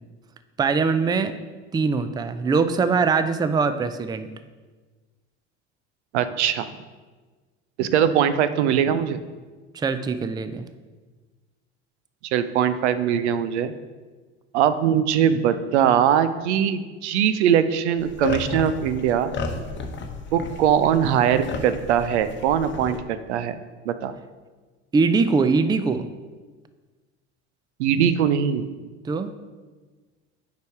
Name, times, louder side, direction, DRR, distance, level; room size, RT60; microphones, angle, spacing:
voice 1, 0.6-1.3 1.7-4.3 9.7-10.6 24.9-26.1 29.0-29.3, right 4 dB, 10° right, 11 dB, 0.4 m, -22 dB
voice 2, 6.1-6.7 7.8-9.2 12.2-13.7 14.5-19.3 20.3-23.6 23.9-24.1 27.8-28.7, right 9 dB, 80° right, 12 dB, 0.6 m, -21 dB
sound 1, 18.0-23.0, left 4 dB, 35° left, 0.9 m, -33 dB
6.7 x 4.9 x 4.6 m, 1.3 s
hypercardioid pair, 75°, 34 cm